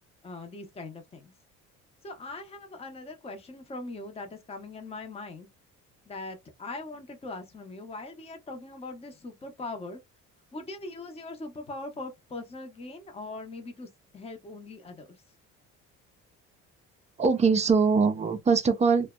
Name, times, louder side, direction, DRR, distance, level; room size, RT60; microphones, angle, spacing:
voice 1, 0.2-1.3 2.0-5.5 6.1-10.0 10.5-15.2, left 2 dB, 20° left, 0.7 m, -41 dB
voice 2, 17.2-19.1, right 5 dB, 25° right, 0.4 m, -22 dB
2.6 x 2.1 x 2.3 m
cardioid pair, 115°, 30 cm